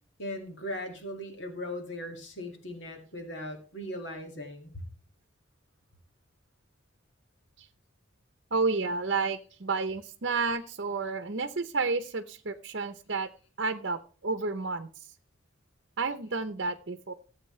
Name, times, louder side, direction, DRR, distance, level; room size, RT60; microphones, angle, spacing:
voice 1, 0.2-4.9, left 1 dB, 60° left, 4 dB, 2.2 m, -38 dB
voice 2, 8.5-13.3 13.6-15.1 16.0-17.1, right 4 dB, 60° right, 8 dB, 0.8 m, -31 dB
16.0 x 8.2 x 3.2 m, 0.38 s
head